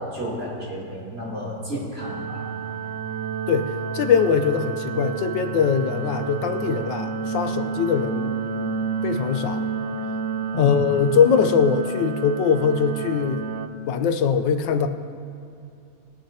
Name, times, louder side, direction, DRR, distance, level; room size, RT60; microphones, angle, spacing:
voice 1, 0.0-2.5 10.5-10.9, left 1 dB, 30° right, -6 dB, 3.4 m, -31 dB
sound 1, 2.0-13.7, right 5 dB, 75° right, 1.3 m, -30 dB
voice 2, 3.5-8.3 9.0-9.6 10.6-13.4 13.9-14.9, left 6 dB, 80° left, 7 dB, 1.4 m, -22 dB
21.5 x 8.9 x 2.8 m, 2.6 s
omnidirectional pair, 2.0 m